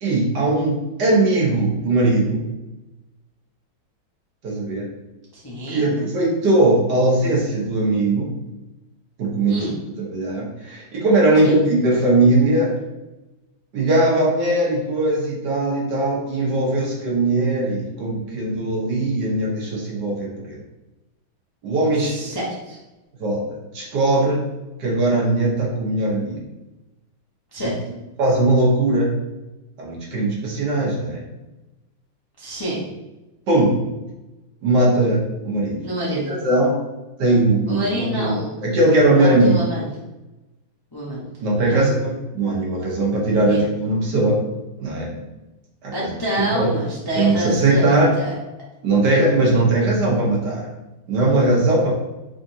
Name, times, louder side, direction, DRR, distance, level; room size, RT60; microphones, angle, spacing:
voice 1, 0.0-2.4 4.4-4.9 5.7-8.3 9.2-9.6 10.0-12.8 13.7-20.6 21.6-22.3 23.2-24.4 24.8-26.4 28.2-29.1 29.8-31.2 33.5-33.8 34.6-35.8 36.1-36.8 37.2-38.3 38.6-39.6 41.4-44.4 44.8-45.2 45.8-46.1 46.4-46.7 47.1-48.1 48.8-50.7 51.1-51.9, right 2 dB, 60° right, -3 dB, 1.5 m, -19 dB
voice 2, 5.3-5.9 9.5-9.7 11.4-11.6 22.0-22.8 27.5-27.7 32.4-32.8 35.8-36.2 37.7-38.5 39.1-39.9 40.9-41.2 41.7-41.9 43.5-43.6 45.9-47.9 48.1-48.3, equal, 30° left, -7 dB, 0.4 m, -27 dB
5.0 x 3.7 x 2.7 m, 1.0 s
omnidirectional pair, 2.2 m